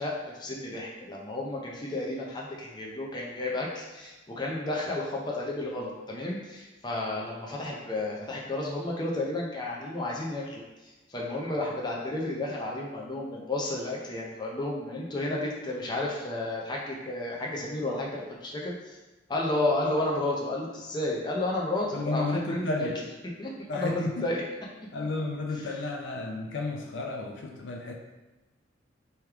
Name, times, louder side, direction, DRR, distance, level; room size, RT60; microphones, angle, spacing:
voice 1, 0.0-10.6 11.1-19.0 19.3-22.9 23.4-24.4, left 2 dB, 25° left, -3 dB, 0.6 m, -32 dB
voice 2, 21.9-23.0 23.7-24.3 24.9-27.9, left 2 dB, 70° left, 1 dB, 0.5 m, -32 dB
3.3 x 3.1 x 3.5 m, 1.1 s
head